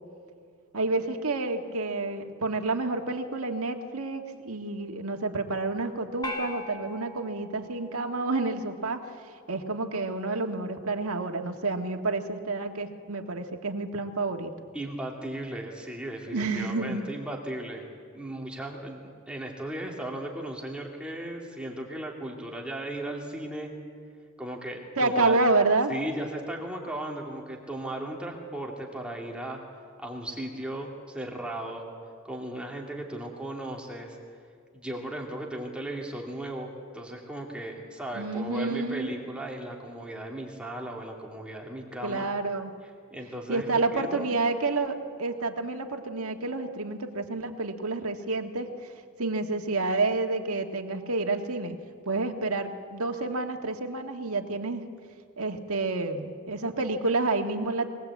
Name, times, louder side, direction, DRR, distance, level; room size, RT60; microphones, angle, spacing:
voice 1, 0.7-9.1 9.5-14.5 16.3-17.0 25.0-26.0 38.1-39.1 42.0-42.7 43.5-48.7 49.2-51.7 52.0-54.9 55.4-57.9, right 3 dB, 85° right, 4 dB, 1.7 m, -29 dB
sound 1, 6.2-8.7, left 2 dB, 20° left, 1.7 m, -40 dB
voice 2, 14.7-17.9 18.1-23.7 24.4-25.4 25.9-29.6 30.0-31.9 32.2-34.2 34.7-42.3 43.1-44.4, right 1 dB, 5° right, -1 dB, 2.3 m, -36 dB
22.5 x 19.0 x 8.3 m, 2.1 s
head